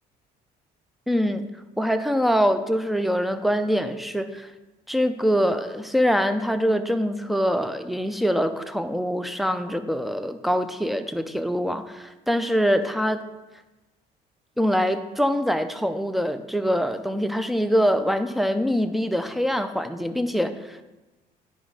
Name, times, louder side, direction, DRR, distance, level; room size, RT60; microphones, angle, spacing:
voice 1, 1.1-1.5 1.8-4.5 4.9-13.3 14.6-20.8, equal, ahead, 9 dB, 0.5 m, -24 dB
10.0 x 5.1 x 3.9 m, 1.1 s
cardioid pair, 110°, 17 cm